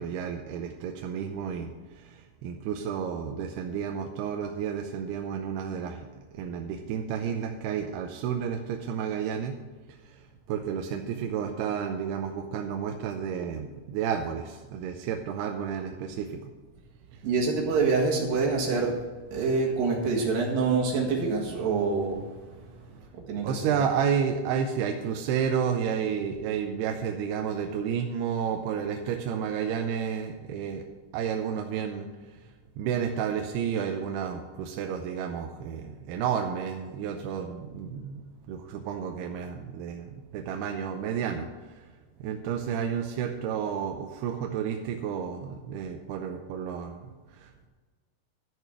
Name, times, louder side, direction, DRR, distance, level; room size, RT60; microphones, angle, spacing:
voice 1, 0.0-6.1 6.3-9.6 10.0-16.5 19.4-19.5 23.4-30.9 31.1-32.1 32.8-41.9 42.2-47.7, right 7 dB, 90° right, 3 dB, 2.7 m, -31 dB
voice 2, 17.2-18.9 19.3-22.2 23.3-23.8, right 4 dB, 65° right, -2 dB, 3.3 m, -26 dB
12.5 x 6.8 x 6.0 m, 1.4 s
omnidirectional pair, 4.6 m